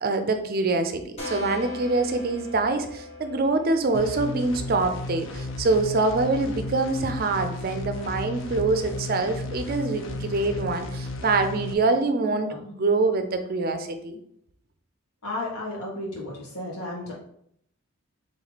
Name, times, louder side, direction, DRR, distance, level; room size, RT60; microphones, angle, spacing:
voice 1, 0.0-14.2, right 3 dB, 40° right, 8 dB, 0.4 m, -25 dB
sound 1, 1.2-6.6, left 2 dB, 30° left, 1.3 m, -41 dB
sound 2, 3.9-11.7, left 2 dB, 60° left, 0.5 m, -34 dB
voice 2, 15.2-17.1, left 2 dB, 85° left, -5 dB, 1.7 m, -33 dB
3.6 x 3.1 x 4.0 m, 0.70 s
head